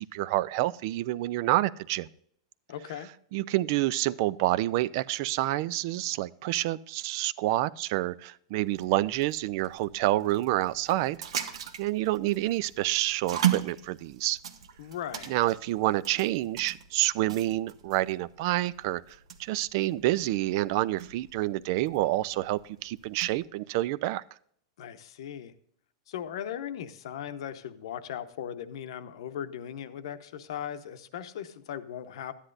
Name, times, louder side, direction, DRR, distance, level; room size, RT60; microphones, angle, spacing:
voice 1, 0.0-2.1 3.3-11.2 11.5-14.4 15.3-24.2, right 16 dB, 45° right, 20 dB, 0.3 m, -28 dB
voice 2, 2.7-3.1 14.8-15.4 24.8-25.5 26.1-32.3, left 9 dB, 65° left, 11 dB, 0.8 m, -38 dB
sound 1, 8.6-23.4, right 10 dB, 85° right, 1.0 m, -38 dB
13.0 x 9.9 x 2.5 m, 0.65 s
supercardioid pair, 165°, 3 cm